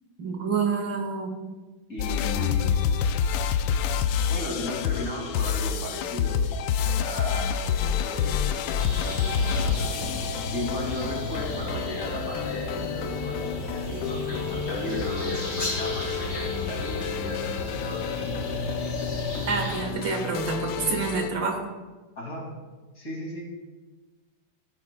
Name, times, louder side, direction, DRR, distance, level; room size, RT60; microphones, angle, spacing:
voice 1, 0.2-1.3 2.4-2.5 19.5-21.6, right 5 dB, 70° right, 3 dB, 2.0 m, -28 dB
voice 2, 1.9-2.8 4.3-6.4 6.8-9.9 10.5-18.3 22.2-22.5 22.9-23.4, equal, 45° left, -3 dB, 2.9 m, -36 dB
sound 1, 2.0-21.3, left 7 dB, 75° left, 1.2 m, -29 dB
sound 2, 8.8-19.8, equal, 30° left, 2.8 m, -34 dB
15.5 x 8.8 x 2.3 m, 1.2 s
omnidirectional pair, 2.1 m